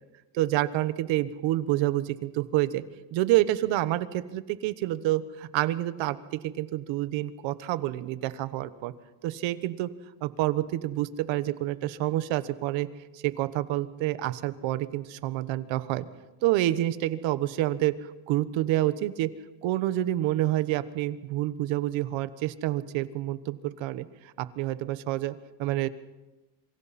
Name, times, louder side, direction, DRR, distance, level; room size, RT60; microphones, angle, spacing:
voice 1, 0.4-2.8 3.1-8.9 9.2-9.9 10.2-12.9 13.1-16.0 16.4-19.3 19.6-25.9, right 15 dB, 75° right, 13 dB, 1.2 m, -28 dB
27.0 x 24.5 x 4.3 m, 1.0 s
cardioid pair, 165°, 47 cm